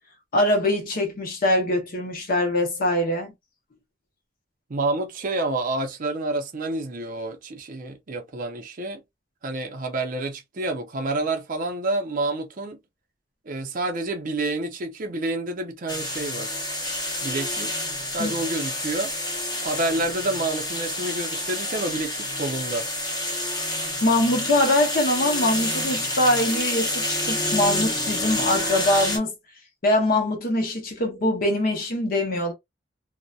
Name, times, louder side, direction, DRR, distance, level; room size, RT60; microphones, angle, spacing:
voice 1, 0.3-3.3 18.2-18.3 24.0-29.3 29.8-32.5, left 1 dB, 50° left, 0.7 m, -23 dB
voice 2, 4.7-9.0 9.4-12.8 13.5-16.5 17.2-17.8 18.1-19.1 19.6-22.9, right 2 dB, 45° right, 0.5 m, -28 dB
sound 1, 15.9-29.2, left 1 dB, 20° left, 1.0 m, -28 dB
2.6 x 2.1 x 2.2 m
head